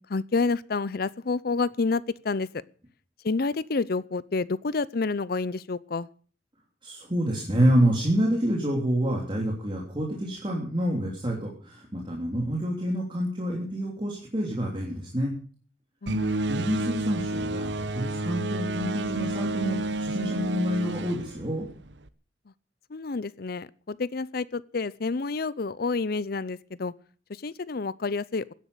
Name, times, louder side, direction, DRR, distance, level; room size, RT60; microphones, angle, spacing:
voice 1, 0.1-2.6 3.2-6.1 16.0-16.5 22.9-26.9 27.3-28.4, left 4 dB, 60° left, 20 dB, 0.6 m, -29 dB
voice 2, 6.8-15.3 16.5-21.7, equal, 30° right, -2 dB, 3.2 m, -27 dB
sound 1, 16.1-22.1, right 2 dB, 80° right, 1.0 m, -30 dB
17.0 x 10.5 x 6.9 m, 0.43 s
head